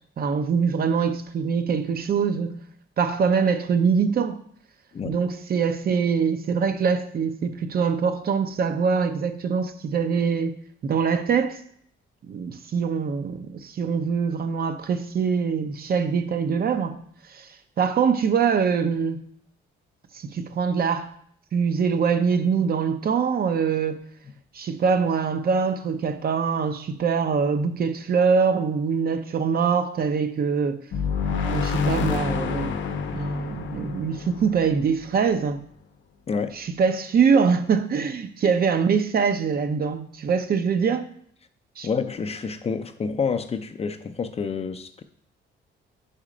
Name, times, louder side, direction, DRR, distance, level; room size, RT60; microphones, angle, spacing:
voice 1, 0.2-2.6 3.0-4.4 5.1-11.6 12.3-17.0 17.3-17.5 17.8-19.2 20.1-21.1 21.5-24.0 24.5-30.8 31.3-32.7 33.1-35.6 36.5-41.0 41.8-41.9, right 6 dB, 50° right, 0.6 m, -23 dB
sound 1, 30.9-35.5, left 5 dB, 75° left, 0.6 m, -28 dB
voice 2, 36.3-36.6 41.8-45.0, left 5 dB, 30° left, 0.5 m, -28 dB
5.0 x 4.3 x 5.0 m
cardioid pair, 90°, 20 cm